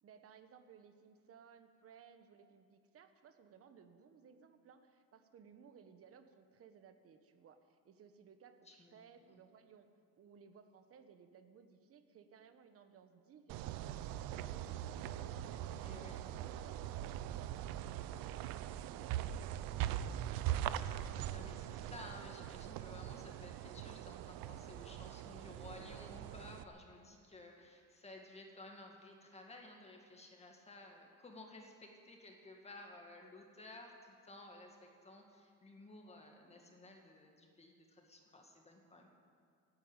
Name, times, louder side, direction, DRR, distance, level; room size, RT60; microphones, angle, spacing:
voice 1, 0.0-9.9 10.2-13.8 14.1-15.7 16.0-20.9, right 7 dB, 40° right, 9 dB, 1.3 m, -61 dB
voice 2, 8.7-9.0 9.3-9.4 15.8-16.3 21.3-39.1, left 2 dB, 20° left, 2 dB, 1.9 m, -55 dB
sound 1, 13.5-26.6, right 12 dB, 85° right, 0.7 m, -42 dB
16.5 x 9.4 x 8.9 m, 2.2 s
cardioid pair, 145°, 34 cm